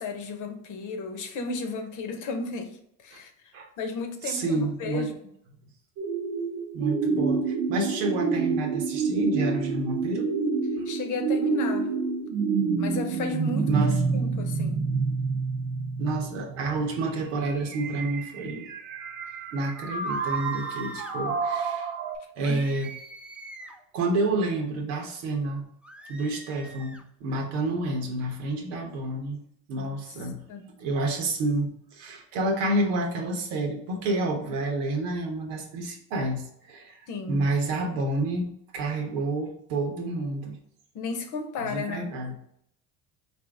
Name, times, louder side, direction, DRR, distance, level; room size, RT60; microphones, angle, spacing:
voice 1, 0.0-3.3 3.8-5.1 10.9-11.9 12.8-13.9 14.1-14.9 22.5-22.6 29.8-30.0 30.5-30.7 37.1-37.5 40.9-42.1, left 3 dB, 60° left, 0.9 m, -34 dB
voice 2, 4.2-5.1 6.7-10.3 10.8-10.9 13.7-13.9 16.0-18.7 19.5-21.9 22.4-22.9 23.9-25.7 26.1-29.4 29.7-30.4 30.8-37.0 37.3-40.6 41.6-42.3, right 2 dB, 85° right, 1.1 m, -29 dB
sound 1, 6.0-22.2, right 4 dB, 70° right, 0.7 m, -28 dB
sound 2, 20.0-21.2 22.4-23.9 25.8-27.0, right 1 dB, 5° right, 0.3 m, -44 dB
4.3 x 2.7 x 3.4 m
supercardioid pair, 90°, 35 cm